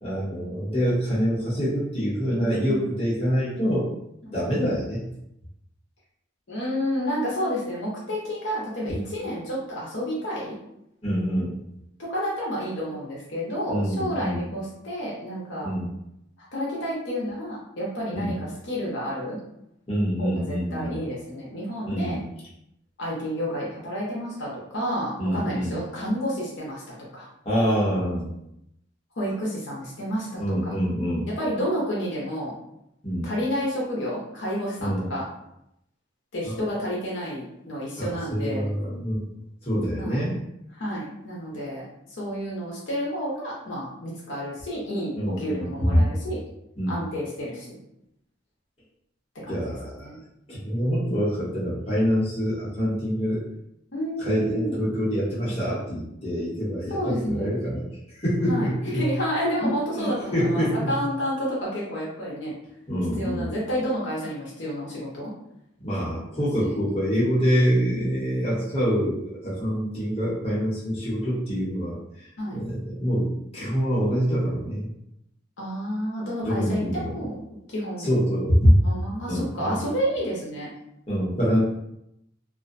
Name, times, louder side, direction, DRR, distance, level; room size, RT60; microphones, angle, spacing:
voice 1, 0.0-3.9 4.3-5.0 11.0-11.6 13.7-14.4 15.6-15.9 18.1-18.3 19.9-21.0 21.8-22.3 25.2-25.8 27.4-28.3 30.4-31.3 33.0-33.3 34.8-35.1 36.4-36.5 38.0-39.3 39.6-40.3 45.1-46.1 46.8-47.0 49.5-50.2 50.5-53.4 54.2-59.1 59.6-60.9 62.9-63.5 65.8-74.9 76.4-77.2 78.0-78.8 79.3-79.8 81.1-81.6, equal, 30° left, -7 dB, 0.8 m, -25 dB
voice 2, 2.4-2.8 4.5-4.7 6.5-10.5 12.0-15.7 16.5-19.4 20.2-22.2 23.0-27.3 29.2-30.7 31.4-32.5 33.2-35.3 36.3-38.7 40.0-40.2 40.8-46.4 46.9-47.8 49.4-49.7 50.0-50.2 53.9-54.8 56.9-57.5 58.5-62.5 63.2-65.3 66.6-66.8 72.4-72.6 75.6-77.4 77.7-78.2 78.8-80.7, equal, 65° left, -5 dB, 0.7 m, -30 dB
2.5 x 2.1 x 2.5 m, 0.80 s
head